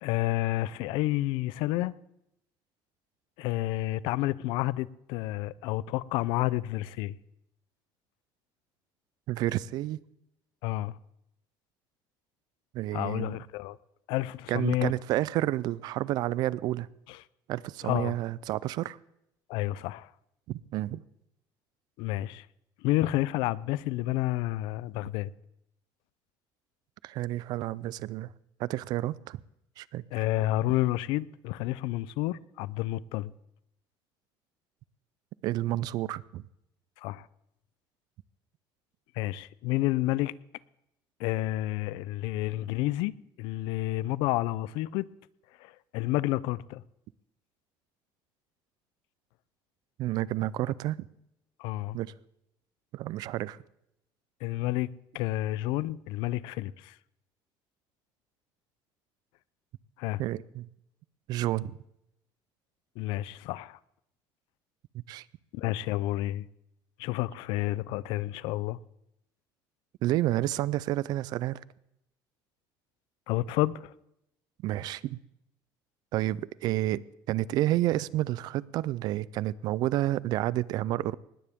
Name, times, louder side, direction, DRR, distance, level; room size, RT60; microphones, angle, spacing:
voice 1, 0.0-1.9 3.4-7.2 10.6-10.9 12.9-13.8 14.1-14.9 17.1-17.2 17.8-18.1 19.5-20.1 22.0-22.4 22.8-25.3 30.1-33.3 37.0-37.3 39.2-40.3 41.2-45.1 45.6-46.8 51.6-52.0 54.4-54.9 55.1-56.9 60.0-60.2 63.0-63.8 65.5-66.5 67.0-68.8 73.3-73.9, left 16 dB, 85° left, 0.5 m, -30 dB
voice 2, 9.3-10.0 12.7-13.4 14.5-16.9 17.5-19.0 20.5-21.0 27.0-28.3 28.6-29.4 29.8-30.2 35.4-36.4 50.0-51.1 51.9-52.1 52.9-53.6 60.2-60.7 61.3-61.8 64.9-65.2 70.0-71.6 74.6-75.2 76.1-81.1, right 15 dB, 60° right, 0.4 m, -30 dB
19.5 x 14.5 x 3.6 m
cardioid pair, 160°, 8 cm